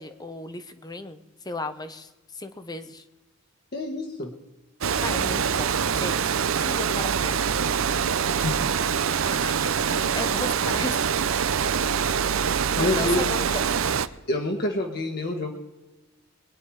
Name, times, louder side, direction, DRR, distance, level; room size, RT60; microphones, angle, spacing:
voice 1, 0.0-3.0 5.0-7.4 9.2-11.1 12.7-13.6, left 2 dB, 20° left, 10 dB, 0.8 m, -35 dB
voice 2, 3.7-4.3 8.4-8.6 12.8-13.2 14.3-15.5, left 2 dB, 50° left, 0 dB, 1.5 m, -27 dB
Water, 4.8-14.1, right 7 dB, 75° right, 0.6 m, -24 dB
22.0 x 10.0 x 4.8 m, 1.1 s
head